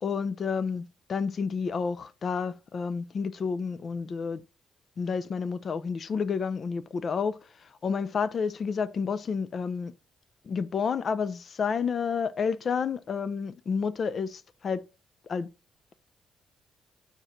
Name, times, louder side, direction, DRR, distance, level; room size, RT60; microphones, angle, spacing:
voice 1, 0.0-4.4 5.0-7.4 7.8-9.9 10.5-14.9 15.3-15.5, left 5 dB, 50° left, 0.6 m, -30 dB
6.6 x 4.7 x 4.3 m
cardioid pair, 90°, 0 cm